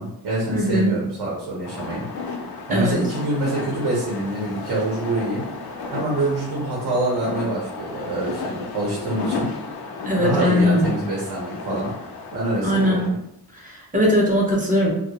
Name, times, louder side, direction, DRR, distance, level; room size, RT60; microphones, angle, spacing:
voice 1, 0.0-2.0 2.7-5.4 5.9-9.5 10.2-11.9 12.3-13.1, right 2 dB, 65° right, -4 dB, 0.8 m, -25 dB
voice 2, 0.5-0.9 2.7-3.0 10.0-10.9 12.6-13.1 13.6-14.9, equal, 20° right, -3 dB, 0.6 m, -20 dB
sound 1, 1.6-13.1, left 4 dB, 65° left, 0.5 m, -33 dB
2.3 x 2.1 x 2.8 m, 0.78 s
wide cardioid pair, 160°, 42 cm